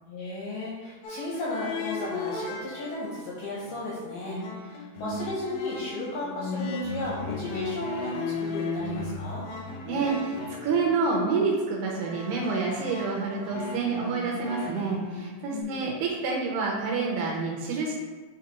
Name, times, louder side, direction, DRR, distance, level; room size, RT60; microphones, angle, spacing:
voice 1, 0.1-9.5 15.5-15.9, left 2 dB, 65° left, -6 dB, 2.2 m, -35 dB
sound 1, 1.0-3.3 3.6-15.6, left 3 dB, 85° left, 2.0 m, -36 dB
voice 2, 9.9-10.4 10.6-18.0, right 4 dB, 75° right, -1 dB, 2.6 m, -28 dB
6.8 x 4.8 x 3.0 m, 1.3 s
omnidirectional pair, 5.1 m